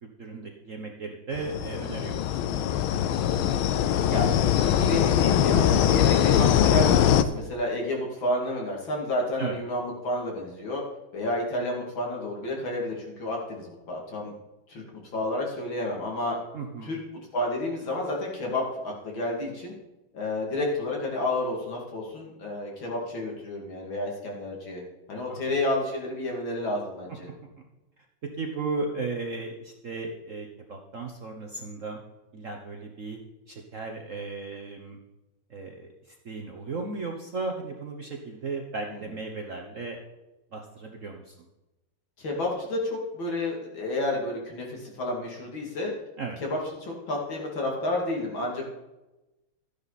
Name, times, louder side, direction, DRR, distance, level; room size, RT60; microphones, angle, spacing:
voice 1, 0.0-2.8 9.4-9.5 16.5-17.0 25.3-25.5 28.4-32.0 32.3-33.2 33.5-35.0 35.5-40.0 40.5-41.4 46.2-46.4, right 3 dB, 50° right, 2 dB, 1.0 m, -35 dB
sound 1, 1.3-7.2, left 10 dB, 80° left, 1.5 m, -22 dB
voice 2, 4.0-10.8 11.1-14.3 14.7-16.4 16.8-17.0 17.3-19.7 20.1-24.8 25.1-27.3 38.9-39.0 42.2-45.9 46.4-48.7, left 1 dB, 65° left, -1 dB, 3.3 m, -30 dB
13.0 x 10.0 x 4.1 m, 1.0 s
omnidirectional pair, 2.3 m